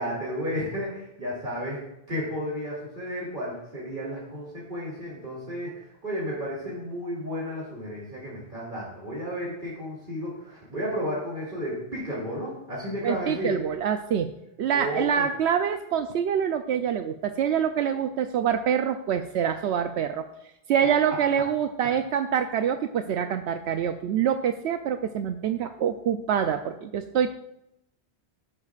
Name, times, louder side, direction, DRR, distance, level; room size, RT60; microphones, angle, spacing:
voice 1, 0.0-13.6 14.7-15.3, equal, 50° right, -6 dB, 3.0 m, -33 dB
voice 2, 13.0-14.3 14.6-20.3 20.7-27.3, right 8 dB, 80° right, 7 dB, 0.9 m, -25 dB
13.5 x 11.0 x 2.4 m, 0.84 s
omnidirectional pair, 1.1 m